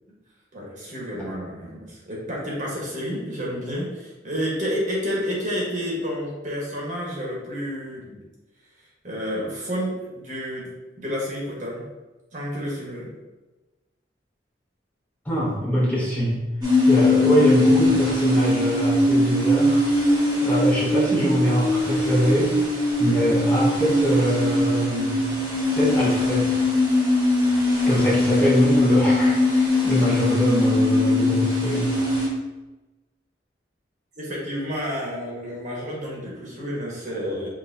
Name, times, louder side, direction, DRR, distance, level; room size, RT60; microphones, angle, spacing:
voice 1, 0.5-8.2 9.0-10.7 11.0-11.8 12.3-13.1 27.9-28.0 34.2-37.5, equal, 45° right, -4 dB, 1.3 m, -30 dB
voice 2, 15.2-16.3 16.8-19.8 20.4-22.5 23.0-25.1 25.7-26.5 27.9-31.9, equal, 10° left, -8 dB, 0.9 m, -23 dB
sound 1, 16.6-32.3, left 1 dB, 20° right, 1.3 m, -21 dB
5.9 x 2.9 x 2.7 m, 1.1 s
head